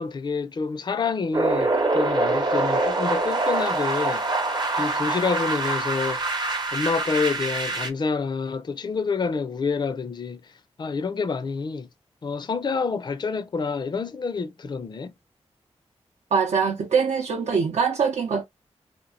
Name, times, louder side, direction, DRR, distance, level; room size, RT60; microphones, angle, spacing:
voice 1, 0.0-4.3 4.8-6.3 6.7-10.4 10.8-11.9 12.2-15.1, left 4 dB, 40° left, 0.4 m, -27 dB
sound 1, 1.3-7.9, right 2 dB, 40° right, 0.7 m, -25 dB
voice 2, 16.3-18.4, right 6 dB, 75° right, 0.6 m, -23 dB
2.9 x 2.2 x 2.6 m
cardioid pair, 60°, 12 cm